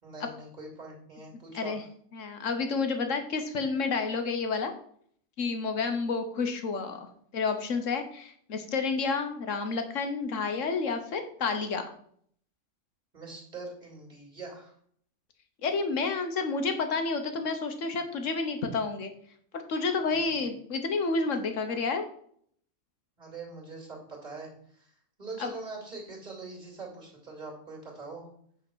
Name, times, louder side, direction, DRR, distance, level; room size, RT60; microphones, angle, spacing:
voice 1, 0.0-1.8 13.1-14.7 20.4-20.5 23.2-24.9 25.2-28.3, right 3 dB, 35° right, -1 dB, 2.9 m, -43 dB
voice 2, 2.1-4.7 5.4-7.1 7.3-11.9 15.6-19.1 19.5-22.0 25.4-25.5, left 4 dB, 70° left, 7 dB, 1.4 m, -30 dB
8.5 x 4.4 x 6.2 m, 0.62 s
omnidirectional pair, 1.4 m